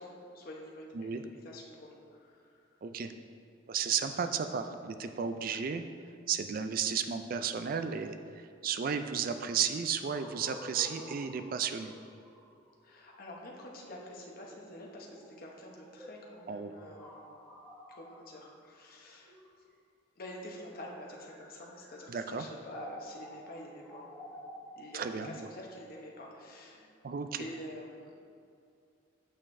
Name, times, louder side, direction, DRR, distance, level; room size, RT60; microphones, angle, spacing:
voice 1, 0.0-2.7 12.8-17.3 17.9-19.3 20.2-24.4 24.8-26.9 27.4-28.1, left 1 dB, 50° left, -1 dB, 0.9 m, -47 dB
voice 2, 2.8-3.1 3.7-5.8 6.3-11.9 16.5-16.7 22.1-22.5 24.9-25.5 27.0-27.4, right 7 dB, 45° right, 9 dB, 0.4 m, -33 dB
sound 1, 10.0-19.9 20.6-27.6, equal, ahead, 1.1 m, -52 dB
9.0 x 6.5 x 2.6 m, 2.4 s
head